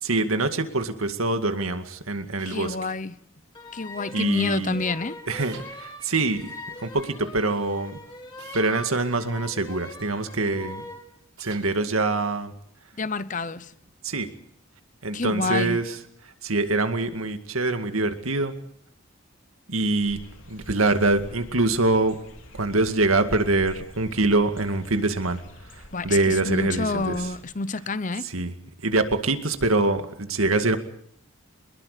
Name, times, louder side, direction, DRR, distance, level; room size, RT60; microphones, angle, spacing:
voice 1, 0.0-2.8 4.1-4.7 5.3-6.5 6.8-8.0 8.5-10.8 11.4-12.5 14.0-14.3 15.0-15.8 16.4-18.5 19.7-20.2 20.5-22.2 22.6-25.4 26.0-27.2 28.3-28.5 28.8-30.8, right 2 dB, 90° right, 2.2 m, -24 dB
sound 1, 2.4-2.7 5.4-5.7 8.4-8.7 11.4-11.7, right 7 dB, 65° right, 6.0 m, -45 dB
voice 2, 2.5-3.1 3.7-5.2 13.0-13.7 15.1-15.8 25.9-28.3, left 3 dB, 40° left, 0.8 m, -28 dB
sound 2, 3.5-11.1, left 1 dB, 20° left, 3.9 m, -41 dB
sound 3, 20.0-27.4, left 1 dB, 70° left, 3.7 m, -47 dB
24.5 x 21.0 x 6.7 m
head